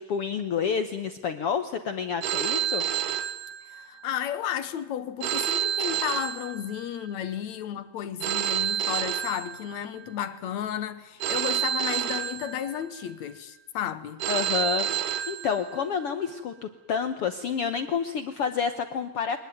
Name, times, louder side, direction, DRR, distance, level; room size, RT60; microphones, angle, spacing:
voice 1, 0.0-2.8 14.3-19.4, left 7 dB, 85° left, 1.3 m, -29 dB
Telephone, 2.2-4.1 5.2-7.1 8.2-10.1 11.2-13.1 14.2-16.1, right 10 dB, 65° right, 1.6 m, -29 dB
voice 2, 3.7-14.2, left 10 dB, 65° left, 2.1 m, -33 dB
23.0 x 20.5 x 9.2 m
omnidirectional pair, 4.1 m